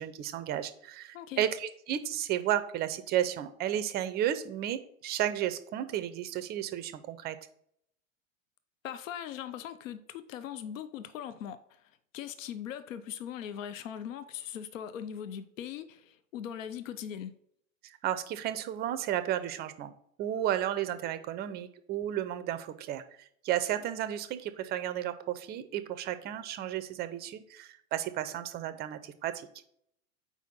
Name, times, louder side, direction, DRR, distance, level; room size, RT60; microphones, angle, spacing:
voice 1, 0.0-7.4 17.8-19.9 20.2-23.0 23.4-29.5, right 11 dB, 25° right, 0.5 m, -33 dB
voice 2, 8.8-11.8 12.1-17.3, left 9 dB, 70° left, 0.6 m, -40 dB
4.6 x 4.2 x 5.3 m
figure-of-eight pair, 90°, 41 cm